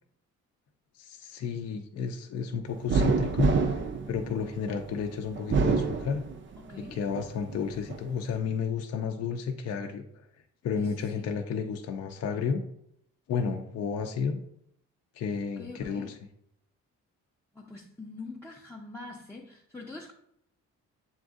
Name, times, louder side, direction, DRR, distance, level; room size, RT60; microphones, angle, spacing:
voice 1, 1.0-3.6 4.1-6.2 6.9-10.2 10.6-12.6 13.3-14.4 15.1-16.2, left 6 dB, 55° left, 4 dB, 0.5 m, -32 dB
sound 1, 2.9-4.8 5.4-6.7 7.1-8.0, right 5 dB, 40° right, 0.5 m, -27 dB
voice 2, 6.6-7.0 10.8-11.4 15.6-16.1 17.5-20.1, left 3 dB, 5° left, -3 dB, 0.5 m, -44 dB
7.1 x 2.5 x 2.4 m, 0.74 s
cardioid pair, 90°, 30 cm